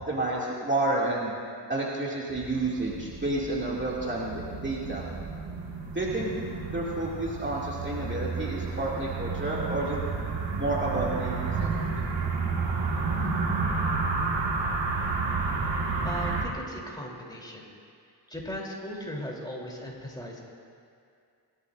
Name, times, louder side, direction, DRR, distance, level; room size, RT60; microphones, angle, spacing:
voice 1, 0.1-1.3 1.7-5.1 5.9-6.3 6.7-10.0 10.6-11.7, right 2 dB, 25° right, -5 dB, 2.4 m, -30 dB
sound 1, 2.3-16.4, right 4 dB, 85° right, 1.8 m, -31 dB
voice 2, 16.0-17.7 18.3-20.4, equal, 10° left, -2 dB, 3.3 m, -37 dB
21.0 x 13.5 x 2.6 m, 2.3 s
cardioid pair, 65°, 44 cm